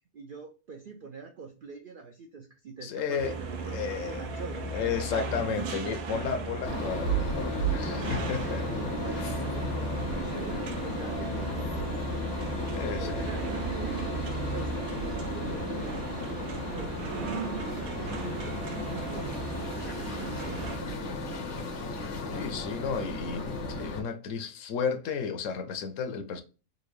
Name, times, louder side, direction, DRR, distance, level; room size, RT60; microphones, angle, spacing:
voice 1, 0.1-5.0 8.7-12.4 13.0-14.0 14.5-18.6 19.1-21.8, right 5 dB, 70° right, 0.5 m, -45 dB
voice 2, 2.8-3.3 3.7-4.2 4.7-8.7 12.7-13.2 18.1-18.4 22.3-26.4, left 6 dB, 70° left, 0.9 m, -33 dB
sound 1, 3.2-20.8, right 3 dB, 90° right, 1.2 m, -36 dB
sound 2, 6.6-24.0, equal, 90° left, 1.3 m, -34 dB
3.8 x 2.3 x 3.1 m
omnidirectional pair, 1.5 m